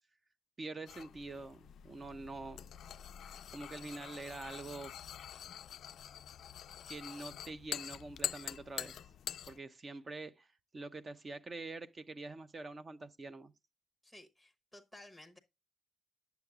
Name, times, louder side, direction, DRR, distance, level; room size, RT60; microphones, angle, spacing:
voice 1, 0.6-4.9 6.9-8.9 9.5-13.5, right 3 dB, 30° right, 0.5 m, -46 dB
sound 1, 0.9-9.6, left 9 dB, 65° left, 0.3 m, -45 dB
voice 2, 14.0-15.4, left 1 dB, 5° right, 1.0 m, -55 dB
9.3 x 6.8 x 2.4 m
cardioid pair, 115°, 0 cm